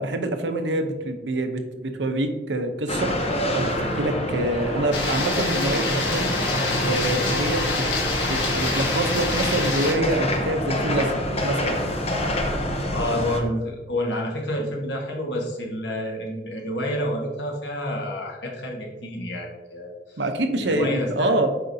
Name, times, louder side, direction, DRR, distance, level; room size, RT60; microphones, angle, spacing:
voice 1, 0.0-3.1 3.5-6.3 6.8-7.8 8.2-11.8 20.2-21.5, right 2 dB, 80° right, 6 dB, 0.7 m, -26 dB
sound 1, 2.9-13.4, left 1 dB, 35° left, 0.8 m, -26 dB
sound 2, 4.9-9.9, left 3 dB, 90° left, 1.4 m, -27 dB
voice 2, 12.9-20.2 20.6-21.3, left 1 dB, 75° left, 0 dB, 1.4 m, -29 dB
7.8 x 4.9 x 2.7 m, 1.2 s
head